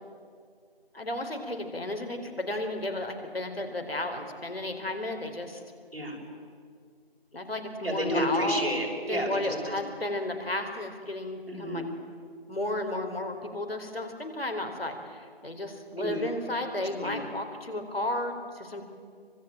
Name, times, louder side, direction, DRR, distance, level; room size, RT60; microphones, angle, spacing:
voice 1, 0.9-5.6 7.3-8.7 9.1-11.8 12.5-18.8, left 1 dB, 70° left, 5 dB, 4.0 m, -33 dB
voice 2, 5.9-6.2 7.8-9.8 11.5-11.9 16.0-16.2 17.0-17.2, equal, 75° right, 0 dB, 6.5 m, -31 dB
24.5 x 20.5 x 8.9 m, 2.1 s
figure-of-eight pair, 170°, 31 cm